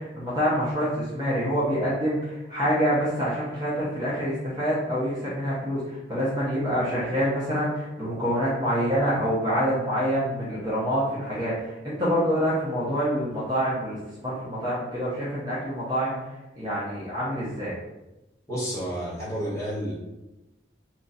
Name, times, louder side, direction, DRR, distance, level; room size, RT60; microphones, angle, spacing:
voice 1, 0.0-16.2 16.5-17.8, equal, 25° right, -9 dB, 0.9 m, -26 dB
voice 2, 18.5-19.9, equal, 15° left, -9 dB, 1.4 m, -30 dB
3.0 x 2.5 x 4.0 m, 0.97 s
head